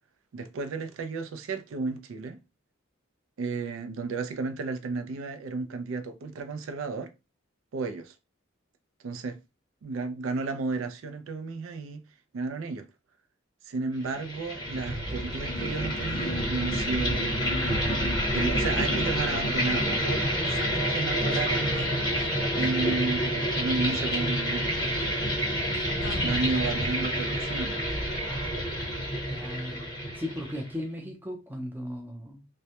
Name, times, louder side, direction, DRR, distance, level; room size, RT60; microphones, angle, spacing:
voice 1, 0.3-2.4 3.4-7.1 7.7-8.1 9.0-9.4 9.8-12.0 12.3-12.8 13.6-17.6 18.3-22.0 22.5-25.3 26.2-27.8, right 3 dB, 80° right, 0.4 m, -33 dB
sound 1, 14.0-30.7, equal, 20° left, 0.9 m, -28 dB
sound 2, 15.5-20.3 21.3-21.4 21.7-21.9 22.2-22.3 22.6-22.7 26.0-26.6, left 3 dB, 60° left, 0.3 m, -41 dB
voice 2, 29.3-29.9 30.2-32.5, left 1 dB, 10° right, 0.5 m, -36 dB
2.1 x 2.1 x 2.8 m
head